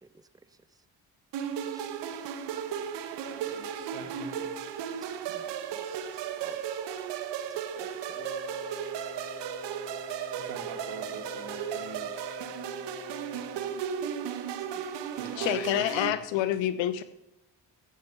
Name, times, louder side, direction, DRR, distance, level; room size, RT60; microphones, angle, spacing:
voice 1, 0.0-0.6 1.7-1.9 4.0-4.1 5.0-5.1 6.4-6.7 7.5-8.2 14.7-14.8, right 3 dB, 5° right, 14 dB, 0.8 m, -53 dB
sound 1, 1.3-16.1, right 8 dB, 55° right, 1.2 m, -35 dB
voice 2, 3.3-4.8 5.2-5.4 5.8-6.2 10.4-12.6 15.1-16.0, right 7 dB, 70° right, 5 dB, 2.0 m, -45 dB
Wind instrument woodwind instrument, 8.1-13.9, left 8 dB, 45° left, 2.0 m, -45 dB
voice 3, 15.3-17.0, left 12 dB, 60° left, 13 dB, 1.1 m, -27 dB
15.5 x 7.1 x 5.6 m, 0.88 s
figure-of-eight pair, 45°, 49 cm